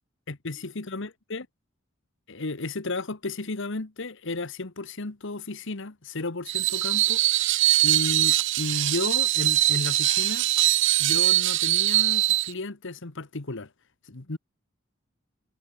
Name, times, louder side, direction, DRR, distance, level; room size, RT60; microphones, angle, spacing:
voice 1, 0.3-1.5 2.3-7.2 7.8-10.5 11.0-13.7 14.1-14.4, left 2 dB, 60° left, 1.5 m, -33 dB
Screech, 6.5-12.5, right 16 dB, 60° right, 0.3 m, -22 dB
head